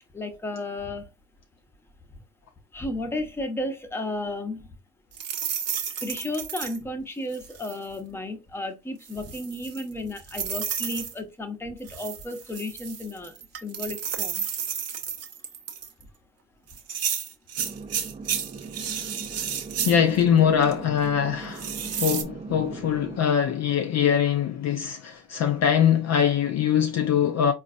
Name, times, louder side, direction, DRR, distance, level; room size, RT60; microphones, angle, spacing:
voice 1, 0.1-1.1 2.1-2.2 2.7-4.8 6.0-14.5, left 1 dB, 5° left, 0.7 m, -33 dB
sound 1, 5.1-6.8 7.3-7.9 9.0-11.1 11.9-16.0 16.7-20.2 20.6-20.7 21.5-22.2, right 8 dB, 35° right, 0.7 m, -32 dB
sound 2, 17.6-23.2, right 4 dB, 15° right, 0.3 m, -40 dB
voice 2, 19.8-27.5, left 8 dB, 40° left, 0.5 m, -22 dB
3.8 x 2.5 x 2.6 m
hypercardioid pair, 75°, 43 cm